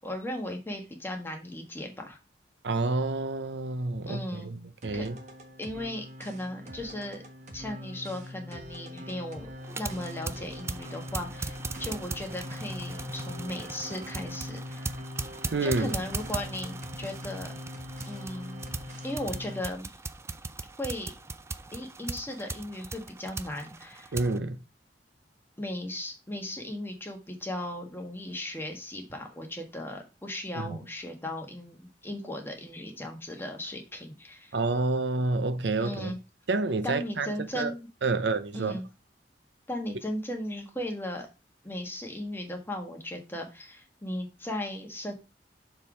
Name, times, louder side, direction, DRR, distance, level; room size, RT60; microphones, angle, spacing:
voice 1, 0.0-2.2 4.1-4.5 4.9-5.1 5.6-7.2 7.5-9.5 9.8-14.9 15.6-17.5 18.1-18.6 19.0-20.0 20.8-21.1 21.7-24.1 25.6-34.5 35.8-36.2 36.8-37.9 38.5-38.8 39.7-41.3 41.6-45.1, left 1 dB, 15° left, 1.5 m, -37 dB
voice 2, 2.6-5.2 15.5-16.0 24.1-24.6 30.6-30.8 34.5-36.1 36.5-37.3 37.5-37.7 38.0-38.8, right 3 dB, 80° right, 0.7 m, -29 dB
sound 1, 4.8-19.6, left 1 dB, 40° right, 1.2 m, -42 dB
sound 2, 9.6-24.4, right 3 dB, 15° right, 0.4 m, -39 dB
6.8 x 3.9 x 4.9 m
head